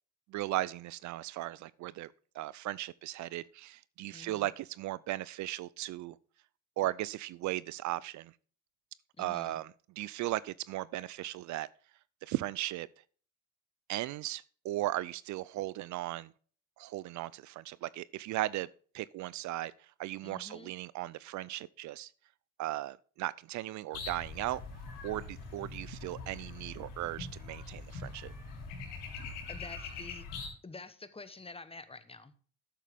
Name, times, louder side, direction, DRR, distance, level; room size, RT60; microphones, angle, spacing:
voice 1, 0.3-6.2 6.8-8.3 9.2-11.7 12.2-12.9 13.9-16.3 16.8-18.7 18.9-22.1 22.6-24.6 25.0-28.3, right 15 dB, 65° right, 0.5 m, -37 dB
voice 2, 4.1-4.5 9.2-9.6 20.2-20.7 29.5-30.3 30.6-32.3, left 3 dB, 20° left, 1.1 m, -48 dB
sound 1, 23.9-30.5, left 4 dB, 85° left, 4.0 m, -43 dB
10.0 x 7.2 x 3.5 m
supercardioid pair, 70°, 31 cm